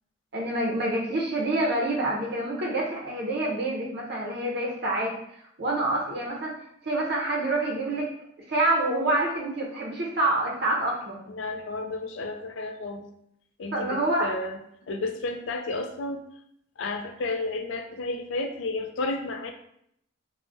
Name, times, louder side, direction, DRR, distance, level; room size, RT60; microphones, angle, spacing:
voice 1, 0.3-5.1 5.6-6.5 6.8-8.1 8.5-11.2 13.7-14.3, right 2 dB, 60° right, -2 dB, 0.6 m, -27 dB
voice 2, 11.3-13.0 13.6-14.6 14.9-16.2 16.8-19.5, left 2 dB, 75° left, 5 dB, 0.4 m, -32 dB
3.4 x 2.1 x 2.5 m, 0.72 s
head